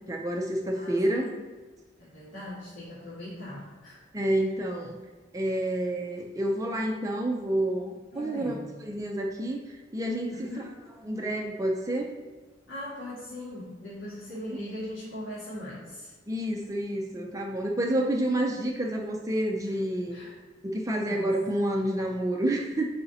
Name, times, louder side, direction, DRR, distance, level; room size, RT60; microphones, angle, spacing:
voice 1, 0.1-1.3 4.1-5.0 5.3-10.3 11.0-12.1 14.5-14.6 16.3-20.2 20.6-22.9, right 1 dB, 20° right, 0 dB, 0.5 m, -29 dB
voice 2, 0.7-1.4 2.0-4.0 8.1-8.7 10.3-10.8 12.7-16.1 20.1-20.4 21.0-21.4, left 1 dB, 75° left, -9 dB, 1.8 m, -40 dB
8.0 x 4.8 x 2.7 m, 1.3 s
head